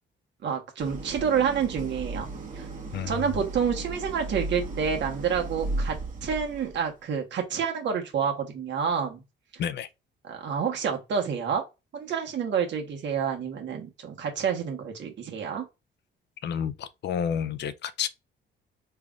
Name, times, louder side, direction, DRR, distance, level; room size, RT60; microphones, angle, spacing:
voice 1, 0.4-2.7 3.1-9.2 10.3-11.6 11.9-15.7, right 7 dB, 65° right, 1.2 m, -28 dB
Idling, 0.8-6.9, right 2 dB, 45° right, 1.3 m, -35 dB
voice 2, 2.9-3.5 9.6-9.9 16.4-18.1, left 8 dB, 60° left, 0.5 m, -30 dB
3.5 x 3.3 x 2.4 m
cardioid pair, 90°, 20 cm